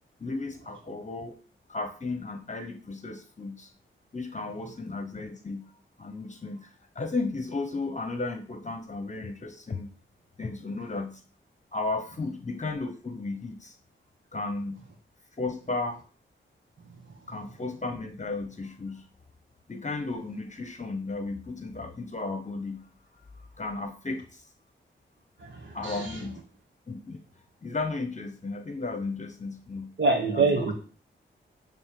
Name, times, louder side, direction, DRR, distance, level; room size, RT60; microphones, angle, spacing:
voice 1, 0.2-1.4 1.7-3.7 4.1-9.9 10.4-11.2 11.7-13.8 14.3-14.8 15.4-16.0 17.3-19.1 19.7-22.9 23.4-24.5 25.7-26.4 26.9-27.2 27.6-30.0 30.3-30.7, left 3 dB, 35° left, 8 dB, 1.1 m, -34 dB
voice 2, 25.4-26.2 30.0-30.7, right 3 dB, 65° right, -1 dB, 1.9 m, -25 dB
11.5 x 3.9 x 7.5 m, 0.41 s
wide cardioid pair, 75°, 20 cm